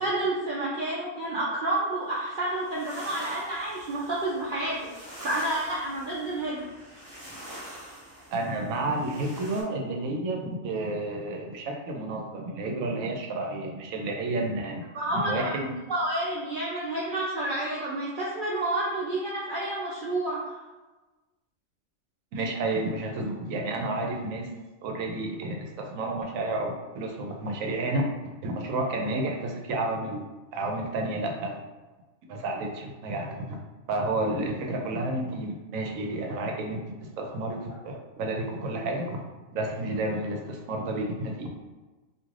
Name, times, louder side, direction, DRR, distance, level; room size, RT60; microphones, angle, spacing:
voice 1, 0.0-4.9 5.2-6.7 14.9-15.6 15.9-20.6, right 1 dB, 65° right, -6 dB, 0.5 m, -29 dB
sound 1, 2.2-9.6, equal, 10° left, 1.1 m, -46 dB
voice 2, 8.3-15.7 22.3-24.5 24.8-28.1 28.4-30.2 30.5-31.6 32.3-33.6 33.9-39.2 39.5-41.5, right 2 dB, 80° right, 1 dB, 1.0 m, -31 dB
3.1 x 2.5 x 2.4 m, 1.2 s
omnidirectional pair, 1.4 m